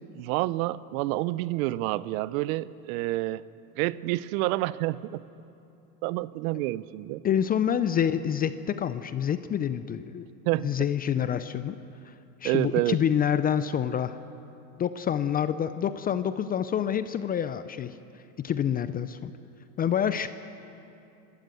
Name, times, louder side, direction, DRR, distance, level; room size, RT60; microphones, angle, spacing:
voice 1, 0.2-3.4 3.8-5.2 6.0-7.2 10.5-10.7 12.4-13.0, right 18 dB, 60° right, 18 dB, 0.7 m, -28 dB
voice 2, 7.2-10.2 10.6-11.8 12.0-12.1 12.4-14.2 14.8-17.9 18.4-19.3 19.8-20.3, left 9 dB, 20° left, 12 dB, 0.4 m, -27 dB
27.5 x 13.0 x 8.2 m, 2.7 s
supercardioid pair, 110°, 47 cm